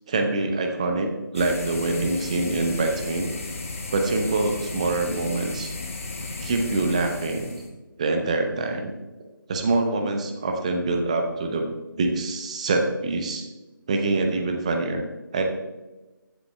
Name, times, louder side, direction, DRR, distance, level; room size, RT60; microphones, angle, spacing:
voice 1, 0.1-3.3 3.9-5.7 6.4-7.6 8.0-8.9 9.5-11.7 12.0-13.5 13.9-15.0 15.3-15.4, right 2 dB, 20° right, 4 dB, 0.7 m, -25 dB
sound 1, 1.3-7.7, left 3 dB, 40° left, 1.2 m, -35 dB
15.0 x 7.5 x 2.3 m, 1.1 s
figure-of-eight pair, 155°, 12 cm